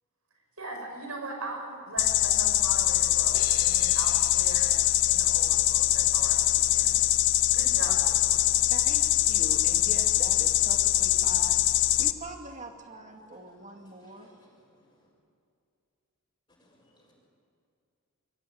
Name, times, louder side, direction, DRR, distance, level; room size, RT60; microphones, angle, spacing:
voice 1, 0.6-4.8 5.1-7.0 7.5-8.6, right 2 dB, 75° right, 2 dB, 5.5 m, -40 dB
sound 1, 2.0-12.1, left 13 dB, 55° left, 0.7 m, -23 dB
sound 2, 3.3-6.1, left 6 dB, 75° left, 2.6 m, -45 dB
voice 2, 8.7-14.3, right 2 dB, 35° right, 3 dB, 2.2 m, -43 dB
voice 3, 16.6-17.1, left 1 dB, 25° left, -6 dB, 5.1 m, -63 dB
24.0 x 14.0 x 9.4 m, 2.5 s
head